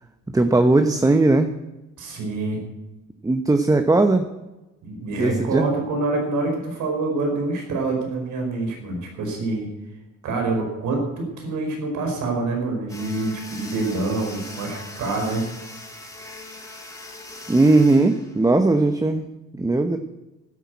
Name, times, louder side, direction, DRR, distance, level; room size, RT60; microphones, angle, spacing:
voice 1, 0.3-1.5 3.2-4.3 5.2-5.7 17.5-19.2 19.6-20.0, right 2 dB, 10° right, 8 dB, 0.9 m, -18 dB
voice 2, 2.0-2.6 4.8-9.7 10.2-15.4, right 3 dB, 80° right, 2 dB, 4.9 m, -26 dB
sound 1, 12.9-18.9, left 2 dB, 10° left, 4.1 m, -40 dB
12.5 x 10.0 x 8.3 m, 1.0 s
cardioid pair, 90°, 30 cm